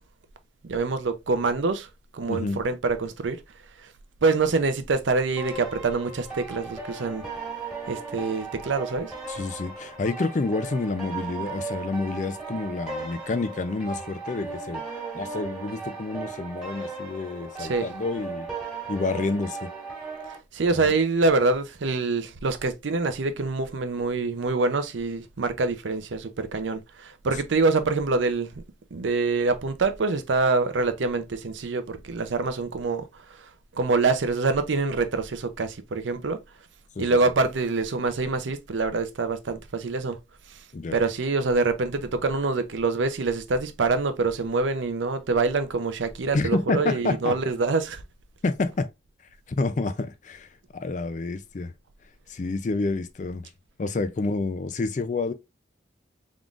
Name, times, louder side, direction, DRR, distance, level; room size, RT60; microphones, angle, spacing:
voice 1, 0.6-1.9 2.1-3.4 4.2-7.2 7.9-9.1 17.6-17.9 20.5-28.5 28.9-33.0 33.7-36.4 37.0-40.2 40.9-48.0, right 3 dB, 80° right, 0.6 m, -25 dB
voice 2, 2.3-2.6 9.3-14.8 15.1-18.5 18.9-19.7 20.7-20.9 37.0-37.2 40.7-41.0 46.3-47.4 48.4-48.9 49.5-51.7 52.3-53.5 53.8-55.3, left 3 dB, 40° left, 0.4 m, -29 dB
sound 1, 5.4-20.4, right 4 dB, 5° right, 1.6 m, -37 dB
3.7 x 3.6 x 2.4 m
head